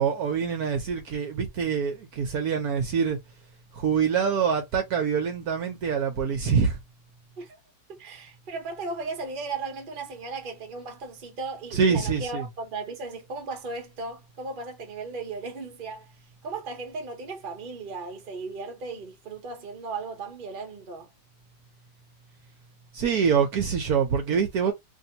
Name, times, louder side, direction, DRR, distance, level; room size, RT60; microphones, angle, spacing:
voice 1, 0.0-3.2 3.7-6.8 11.7-12.5 22.9-24.7, right 6 dB, 65° right, 1.0 m, -25 dB
voice 2, 7.9-16.1 16.4-21.1, right 3 dB, 45° right, 0.6 m, -36 dB
2.9 x 2.7 x 2.6 m
omnidirectional pair, 2.1 m